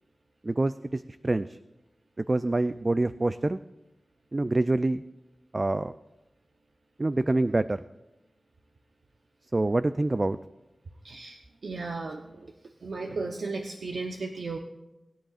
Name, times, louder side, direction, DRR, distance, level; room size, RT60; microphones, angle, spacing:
voice 1, 0.4-1.6 2.3-3.6 4.3-5.0 5.5-5.9 7.0-7.8 9.5-10.4, right 2 dB, 35° right, 12 dB, 0.3 m, -26 dB
voice 2, 11.0-12.5 12.8-14.6, right 3 dB, 75° right, 2 dB, 0.8 m, -35 dB
20.0 x 10.0 x 2.4 m, 1.0 s
wide cardioid pair, 60°, 0 cm